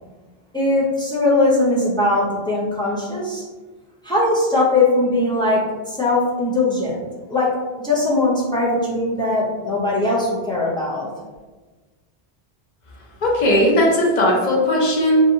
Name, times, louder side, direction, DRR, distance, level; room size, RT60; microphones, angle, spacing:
voice 1, 0.5-3.4 4.0-7.0 7.3-7.5 7.8-11.1, left 2 dB, 5° left, -5 dB, 0.4 m, -20 dB
voice 2, 13.2-15.2, left 1 dB, 50° left, -2 dB, 0.6 m, -17 dB
2.8 x 2.2 x 2.6 m, 1.3 s
omnidirectional pair, 1.1 m